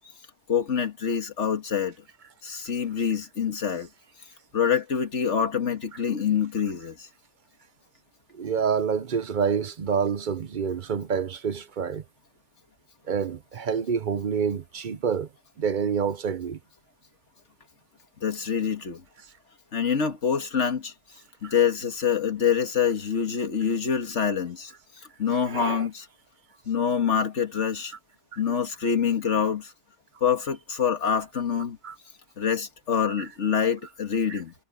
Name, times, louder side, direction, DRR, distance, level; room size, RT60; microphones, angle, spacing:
voice 1, 0.5-1.9 2.4-3.9 4.5-7.1 18.2-19.0 19.7-20.9 21.4-24.7 25.2-26.1 26.7-27.9 28.4-29.7 30.2-31.8 32.4-34.5, left 7 dB, 85° left, 2.0 m, -26 dB
voice 2, 8.3-12.0 13.1-15.3 15.6-16.6 21.4-21.5 25.3-25.9 28.3-28.4 31.8-31.9 33.2-33.3 34.3-34.4, right 6 dB, 50° right, 0.8 m, -27 dB
omnidirectional pair, 1.2 m